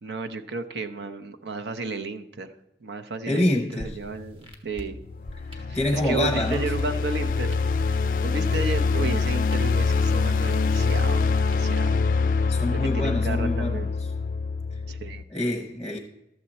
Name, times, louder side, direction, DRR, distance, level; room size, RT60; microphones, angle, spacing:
voice 1, 0.0-2.5 2.8-5.0 5.7-7.6 7.9-12.0 12.7-13.9 14.9-15.2, right 3 dB, 85° right, 0.8 m, -33 dB
voice 2, 3.3-4.0 5.5-6.6 12.5-13.9 15.3-16.0, left 1 dB, 5° left, 0.8 m, -26 dB
sound 1, 3.8-11.8, left 1 dB, 30° right, 1.3 m, -44 dB
sound 2, 5.0-15.2, left 4 dB, 50° left, 0.3 m, -25 dB
12.5 x 7.5 x 4.2 m
head